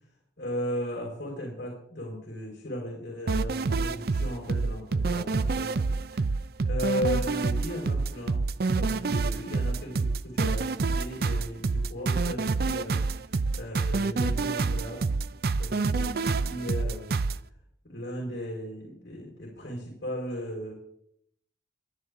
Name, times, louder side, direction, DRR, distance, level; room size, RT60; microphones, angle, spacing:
voice 1, 0.4-5.8 6.1-15.0 15.6-17.1 17.8-20.7, equal, 70° left, -3 dB, 4.4 m, -36 dB
sound 1, 3.3-17.4, right 4 dB, 55° right, 0.5 m, -27 dB
22.5 x 8.2 x 3.7 m, 0.71 s
head